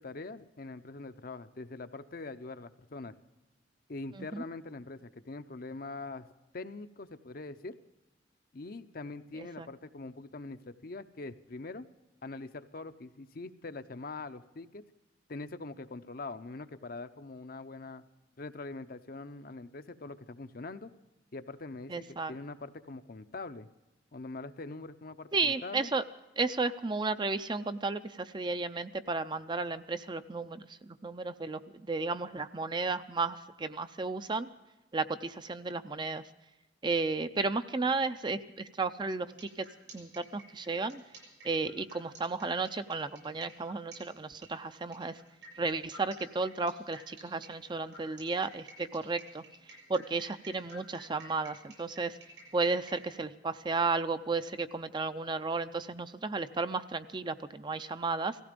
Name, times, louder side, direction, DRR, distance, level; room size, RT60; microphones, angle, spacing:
voice 1, 0.0-3.1 3.9-7.8 8.5-11.9 12.2-14.8 15.3-18.0 18.4-20.9 21.3-23.7 24.1-25.9, left 3 dB, 50° left, 10 dB, 0.7 m, -43 dB
voice 2, 9.4-9.7 21.9-22.3 25.3-26.0 26.4-34.5 34.9-36.2 36.8-39.7 39.9-41.0 41.4-45.2 45.6-49.4 49.9-52.2 52.5-58.4, right 3 dB, 25° right, 11 dB, 0.5 m, -33 dB
sound 1, 39.2-53.1, right 2 dB, 75° right, 7.3 m, -53 dB
17.5 x 15.5 x 5.2 m, 1.0 s
head